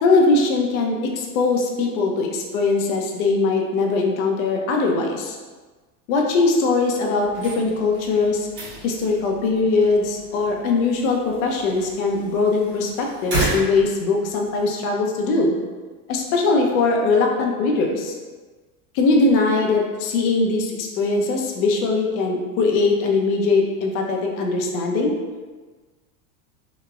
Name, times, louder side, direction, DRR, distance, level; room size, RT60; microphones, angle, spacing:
voice 1, 0.0-5.4 6.1-8.5 8.8-15.6 16.1-18.1 18.9-25.1, left 3 dB, 75° left, 1 dB, 0.6 m, -21 dB
sound 1, 7.2-14.7, right 1 dB, 50° right, 1.0 m, -33 dB
2.9 x 2.0 x 2.3 m, 1.3 s
supercardioid pair, 140°, 42 cm